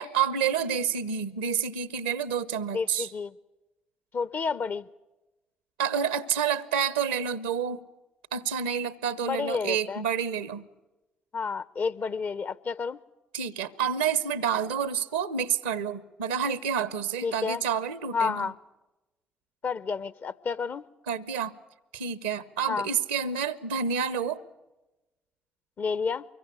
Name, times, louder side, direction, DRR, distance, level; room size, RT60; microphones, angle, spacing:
voice 1, 0.0-3.1 5.8-7.8 8.3-10.6 13.3-18.5 21.1-21.6 21.9-24.4, right 7 dB, 80° right, 0.8 m, -29 dB
voice 2, 2.7-3.3 4.1-4.9 9.2-10.0 11.3-13.0 17.2-17.6 18.1-18.5 19.6-20.9 22.7-22.9 25.8-26.3, left 5 dB, 45° left, 0.8 m, -30 dB
24.5 x 22.5 x 7.0 m
figure-of-eight pair, 40°, 5 cm